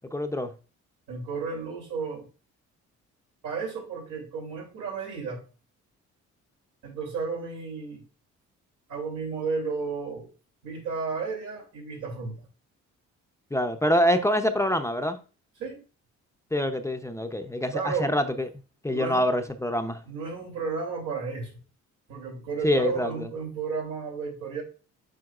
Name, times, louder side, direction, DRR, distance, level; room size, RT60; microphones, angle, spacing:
voice 1, 0.1-0.5 13.5-15.2 16.5-18.5 18.8-20.0 22.6-23.3, left 1 dB, 10° left, 0.6 m, -25 dB
voice 2, 1.1-2.3 3.4-5.4 6.8-8.0 8.9-10.3 10.6-12.5 15.6-15.8 17.7-18.1 18.9-19.2 20.1-21.6 22.1-24.6, right 5 dB, 90° right, 3.1 m, -33 dB
7.8 x 5.1 x 2.4 m
cardioid pair, 90°, 30 cm